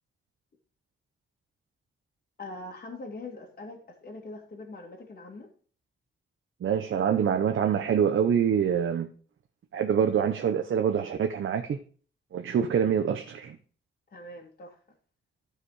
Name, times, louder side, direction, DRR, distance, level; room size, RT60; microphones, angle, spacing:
voice 1, 2.4-5.5 14.1-14.8, left 2 dB, 45° left, 2.0 m, -42 dB
voice 2, 6.6-9.1 9.7-11.8 12.3-13.6, right 8 dB, 80° right, 0.9 m, -25 dB
12.5 x 5.0 x 4.9 m
wide cardioid pair, 140°, 20 cm